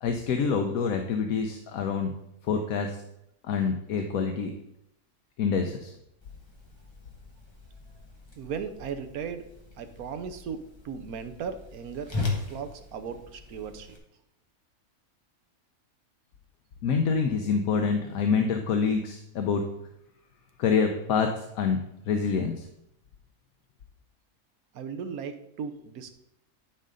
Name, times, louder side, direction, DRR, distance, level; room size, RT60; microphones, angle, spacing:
voice 1, 0.0-2.1 2.4-3.0 3.4-4.5 5.4-5.9 16.8-19.6 20.6-21.8 22.1-22.6, left 5 dB, 75° left, 5 dB, 1.2 m, -26 dB
Whoosh swoosh swish, 6.2-14.0, left 3 dB, 20° left, 1.4 m, -39 dB
voice 2, 8.4-9.5 9.8-14.0 24.7-26.1, right 6 dB, 80° right, 8 dB, 1.3 m, -37 dB
11.5 x 5.3 x 3.8 m, 0.80 s
omnidirectional pair, 1.5 m